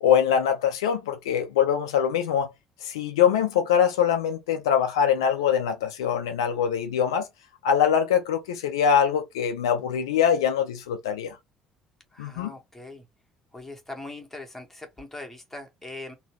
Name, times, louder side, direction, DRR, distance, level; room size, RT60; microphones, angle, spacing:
voice 1, 0.0-2.5 2.8-7.3 7.6-11.4 12.2-12.5, left 8 dB, 70° left, 0.5 m, -23 dB
voice 2, 12.1-13.0 13.5-16.2, left 2 dB, 10° left, 1.4 m, -41 dB
3.6 x 2.3 x 3.0 m
figure-of-eight pair, 55°, 3 cm